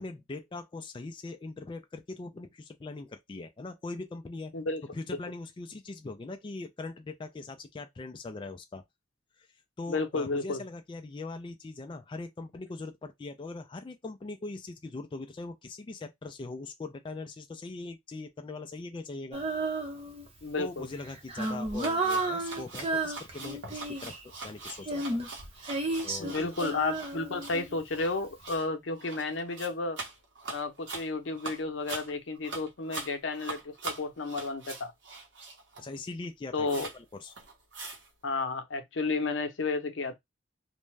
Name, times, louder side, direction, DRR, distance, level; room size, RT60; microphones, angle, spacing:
voice 1, 0.0-4.5 4.9-8.8 9.4-9.5 9.8-19.4 20.6-25.2 26.0-26.5 35.8-37.3, left 3 dB, 25° left, 0.3 m, -41 dB
voice 2, 9.9-10.6 20.4-20.9 26.2-30.0 30.5-34.9 36.5-36.9 38.2-40.1, left 3 dB, 85° left, 0.7 m, -32 dB
Female singing, 19.3-20.4 21.0-24.2 24.8-28.0, right 2 dB, 30° right, 0.7 m, -32 dB
sound 1, 21.4-36.0 36.2-36.3 36.7-37.0 37.3-38.1, right 3 dB, 70° right, 0.9 m, -43 dB
2.5 x 2.2 x 3.1 m
head